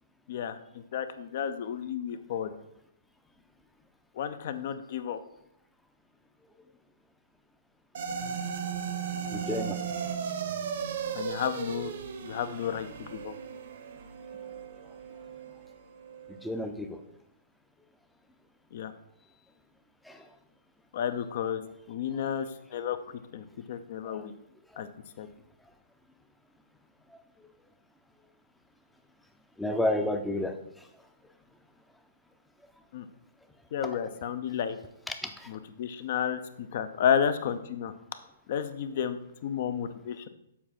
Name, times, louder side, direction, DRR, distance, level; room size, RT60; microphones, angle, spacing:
voice 1, 0.3-2.5 4.2-5.2 11.1-11.9 12.2-13.3 18.7-18.9 20.9-21.6 21.9-22.5 22.7-23.0 23.3-24.3 24.8-24.9 25.2-25.3 32.9-33.1 33.7-34.8 35.5-37.9 38.5-40.3, left 8 dB, 50° left, 11 dB, 0.6 m, -32 dB
sound 1, 7.9-16.5, right 7 dB, 60° right, 0.9 m, -36 dB
voice 2, 9.3-9.8 16.4-17.0 20.1-20.2 24.1-24.2 29.6-30.5 35.1-35.5, left 1 dB, 5° left, 6 dB, 0.6 m, -30 dB
7.3 x 4.7 x 4.4 m, 0.79 s
hypercardioid pair, 150°, 0 cm